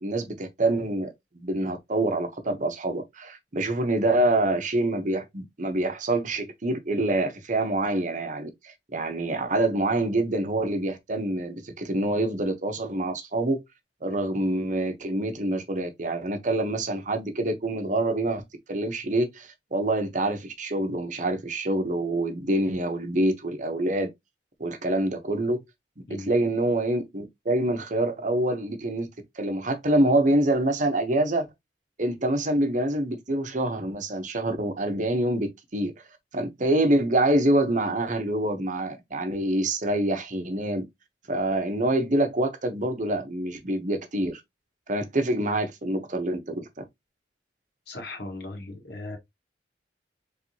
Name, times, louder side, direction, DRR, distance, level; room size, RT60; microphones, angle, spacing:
voice 1, 0.0-13.6 14.0-18.4 18.7-24.1 24.6-25.6 26.3-29.1 29.4-31.5 32.0-35.9 36.3-40.9 41.3-44.4 44.9-46.9, right 1 dB, 45° right, 0.9 m, -26 dB
voice 2, 47.9-49.2, left 2 dB, 60° left, 1.4 m, -37 dB
4.5 x 3.4 x 2.8 m
head